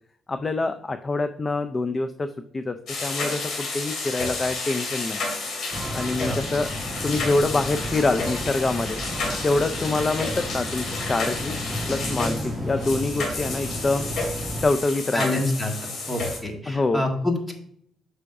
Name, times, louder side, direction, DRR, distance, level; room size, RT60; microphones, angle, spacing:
voice 1, 0.3-2.8 3.0-5.2 5.9-6.7 7.0-9.0 9.4-11.5 11.9-14.1 14.6-15.4 16.7-17.0, left 3 dB, 25° left, 9 dB, 0.4 m, -25 dB
sound 1, 2.9-16.4, left 3 dB, 65° left, 2.9 m, -31 dB
sound 2, 5.7-14.6, equal, 15° right, 1.6 m, -33 dB
voice 2, 15.1-15.7 16.1-17.5, left 2 dB, 10° left, 2 dB, 1.7 m, -26 dB
8.2 x 5.6 x 2.6 m, 0.67 s
cardioid pair, 110°, 0 cm